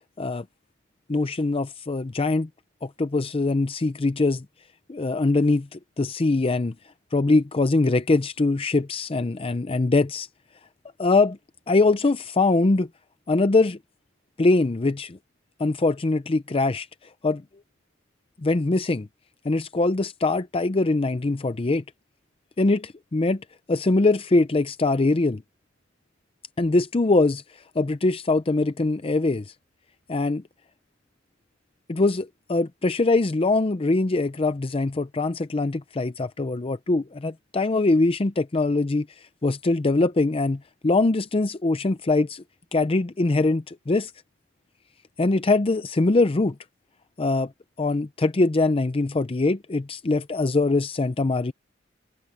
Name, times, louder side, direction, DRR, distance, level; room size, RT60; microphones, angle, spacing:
voice 1, 1.1-2.5 2.8-4.5 4.9-6.7 7.1-10.3 11.0-11.4 11.7-12.9 13.3-13.8 14.4-15.2 15.6-16.9 17.2-17.4 18.4-19.1 19.4-21.8 22.6-23.4 23.7-25.4 26.6-27.4 27.8-29.5 30.1-30.4 31.9-39.1 39.4-42.4 42.7-44.1 45.2-46.6 47.2-47.5 47.8-51.5, left 3 dB, 30° left, 0.5 m, -22 dB
head